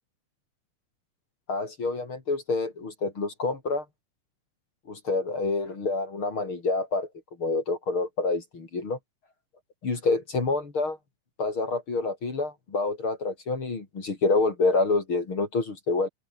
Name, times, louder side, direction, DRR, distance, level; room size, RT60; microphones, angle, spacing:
voice 1, 1.5-3.8 4.9-7.1 7.4-9.0 9.8-11.0 11.4-16.1, left 3 dB, 40° left, 4.2 m, -27 dB
open air
omnidirectional pair, 3.6 m